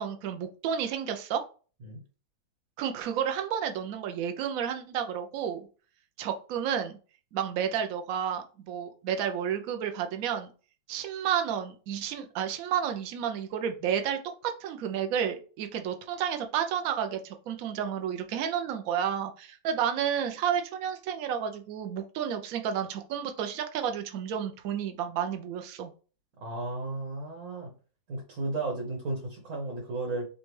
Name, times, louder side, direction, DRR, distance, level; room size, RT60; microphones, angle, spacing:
voice 1, 0.0-1.4 2.8-5.7 6.2-7.0 7.3-10.5 10.9-25.9, right 8 dB, 70° right, 6 dB, 0.8 m, -31 dB
voice 2, 26.4-27.7 28.1-30.3, right 2 dB, 50° right, 0 dB, 1.5 m, -34 dB
5.1 x 2.3 x 3.2 m, 0.37 s
omnidirectional pair, 2.1 m